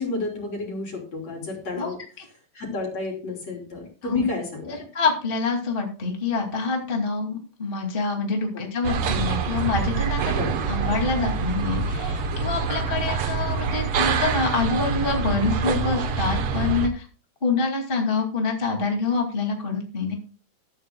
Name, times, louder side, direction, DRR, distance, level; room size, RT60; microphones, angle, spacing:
voice 1, 0.0-2.0 2.5-4.8 10.3-10.6, left 3 dB, 45° left, 1 dB, 4.6 m, -30 dB
voice 2, 4.7-17.1 17.4-20.1, left 4 dB, 20° left, 1 dB, 2.0 m, -26 dB
sound 1, 8.8-16.9, right 5 dB, 75° right, 1.3 m, -26 dB
14.5 x 14.0 x 2.3 m, 0.37 s
omnidirectional pair, 4.1 m